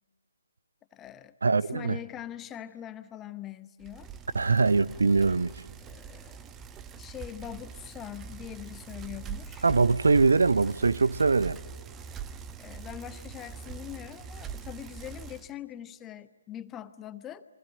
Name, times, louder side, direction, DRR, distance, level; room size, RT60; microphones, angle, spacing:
voice 1, 0.9-4.1 5.8-6.4 7.0-9.7 12.6-17.4, left 11 dB, 15° left, 0.9 m, -42 dB
voice 2, 1.4-2.0 4.3-5.5 9.6-11.6, right 4 dB, 65° right, 0.8 m, -22 dB
Bicycle, 3.8-15.5, right 6 dB, 15° right, 0.9 m, -43 dB
28.5 x 24.5 x 7.7 m
figure-of-eight pair, 140°, 0 cm